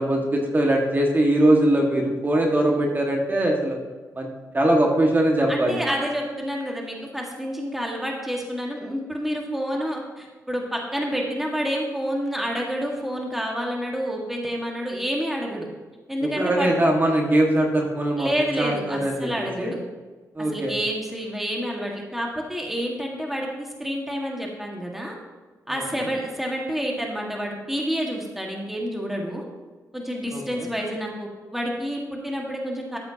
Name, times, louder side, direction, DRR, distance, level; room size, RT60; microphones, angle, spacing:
voice 1, 0.0-3.8 4.1-4.3 4.5-5.8 16.4-19.7 20.4-20.7 25.7-25.8 30.3-30.4, right 1 dB, 30° right, 0 dB, 1.8 m, -21 dB
voice 2, 5.5-15.7 16.1-16.7 18.2-19.8 20.5-25.2 25.7-29.4 29.9-33.0, equal, 5° right, -1 dB, 1.8 m, -29 dB
13.0 x 7.6 x 2.9 m, 1.3 s
cardioid pair, 80°, 7 cm